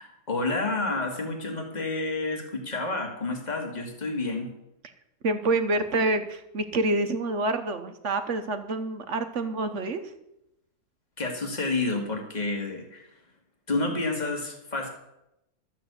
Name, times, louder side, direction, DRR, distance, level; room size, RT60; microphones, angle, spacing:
voice 1, 0.0-4.5 11.2-13.1 13.7-14.9, left 2 dB, 30° left, 2 dB, 2.3 m, -29 dB
voice 2, 5.2-10.1, right 2 dB, 55° right, 8 dB, 1.3 m, -27 dB
13.0 x 7.6 x 8.1 m, 0.85 s
omnidirectional pair, 1.6 m